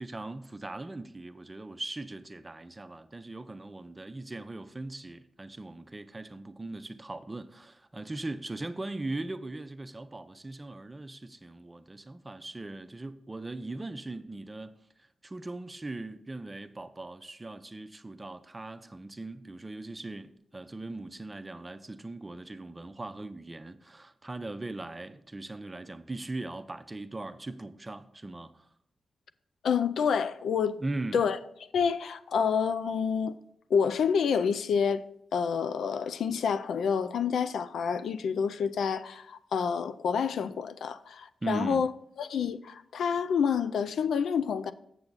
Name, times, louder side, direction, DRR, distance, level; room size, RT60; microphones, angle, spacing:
voice 1, 0.0-28.7 30.8-31.2 41.4-41.9, right 2 dB, 25° right, 0.6 m, -39 dB
voice 2, 29.6-30.8 31.1-31.4 31.7-33.4 33.7-35.0 35.3-41.9 42.2-44.7, left 6 dB, 85° left, 0.3 m, -28 dB
7.0 x 6.9 x 4.0 m
cardioid pair, 55°, 0 cm